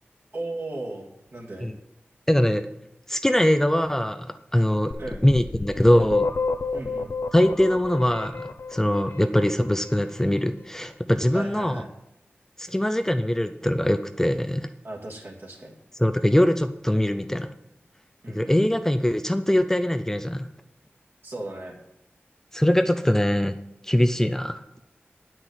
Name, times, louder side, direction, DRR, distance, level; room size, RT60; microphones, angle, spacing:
voice 1, 0.3-1.7 5.0-5.3 6.7-7.1 11.3-11.9 14.8-15.7 18.2-18.6 21.2-21.8, right 2 dB, 55° right, 0 dB, 2.3 m, -36 dB
voice 2, 2.3-2.7 3.1-4.9 5.2-6.3 7.3-11.8 12.6-14.7 16.0-17.5 18.3-20.5 22.5-23.6 23.8-24.6, left 1 dB, 10° left, 9 dB, 0.5 m, -22 dB
sound 1, 4.9-9.8, left 4 dB, 70° left, 0.8 m, -30 dB
8.8 x 6.0 x 8.0 m, 0.88 s
wide cardioid pair, 75°, 4 cm